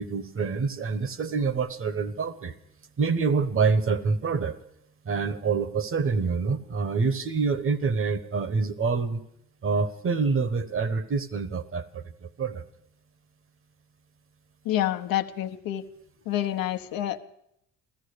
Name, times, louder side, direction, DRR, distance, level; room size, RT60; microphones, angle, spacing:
voice 1, 0.0-2.5 3.0-4.6 5.0-9.2 9.6-12.6, right 4 dB, 35° right, 13 dB, 1.3 m, -26 dB
voice 2, 14.6-15.8 16.3-17.2, left 12 dB, 70° left, 7 dB, 1.1 m, -28 dB
15.5 x 13.5 x 6.7 m, 0.75 s
cardioid pair, 95°, 36 cm